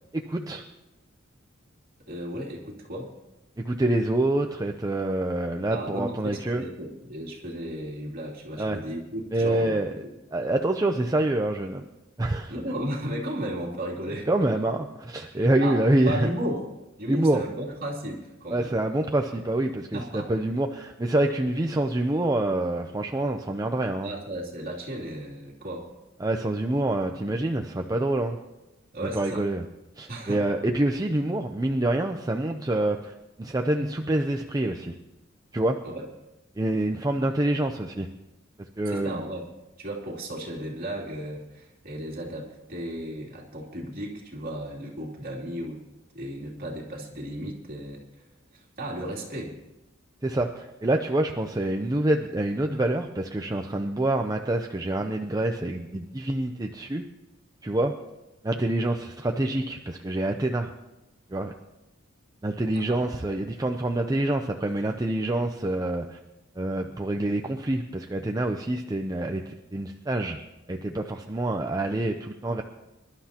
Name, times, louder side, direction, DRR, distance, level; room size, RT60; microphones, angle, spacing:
voice 1, 0.1-0.6 3.6-6.6 8.6-8.8 9.3-9.9 10.3-11.9 12.2-12.5 14.3-16.3 17.1-17.5 18.5-24.1 26.2-28.4 29.1-29.6 30.0-34.9 35.5-35.8 36.6-38.1 38.8-39.2 50.2-57.0 57.6-57.9 58.4-60.7 61.3-61.5 62.4-66.2 66.6-70.4 70.7-72.6, right 1 dB, 20° right, 3 dB, 0.6 m, -26 dB
voice 2, 2.1-3.1 5.7-10.1 12.5-14.3 15.3-16.7 17.0-18.7 19.9-20.3 24.0-25.9 28.9-29.5 30.1-30.5 35.8-36.0 38.8-39.5 39.8-45.8 46.1-48.0 48.5-49.6 62.7-63.0, right 1 dB, 45° right, -2 dB, 3.0 m, -35 dB
25.0 x 12.0 x 2.9 m, 1.0 s
head